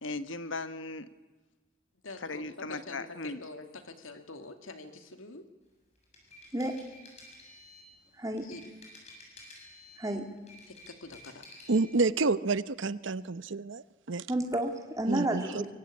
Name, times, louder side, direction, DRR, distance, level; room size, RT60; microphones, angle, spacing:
voice 1, 0.0-1.1 2.2-3.4, left 3 dB, 70° left, 12 dB, 1.3 m, -37 dB
voice 2, 2.0-5.4 8.4-8.6 10.7-11.4 15.5-15.6, left 3 dB, 90° left, 7 dB, 2.4 m, -45 dB
sound 1, 6.0-7.9 8.4-10.1 10.4-11.9, left 2 dB, 35° left, 7.3 m, -52 dB
voice 3, 8.2-8.5 10.0-10.3 14.3-15.7, right 1 dB, 15° right, 3 dB, 2.5 m, -31 dB
voice 4, 11.7-14.3 15.1-15.4, right 3 dB, 70° right, 16 dB, 0.8 m, -29 dB
24.5 x 23.0 x 8.6 m, 1.2 s
head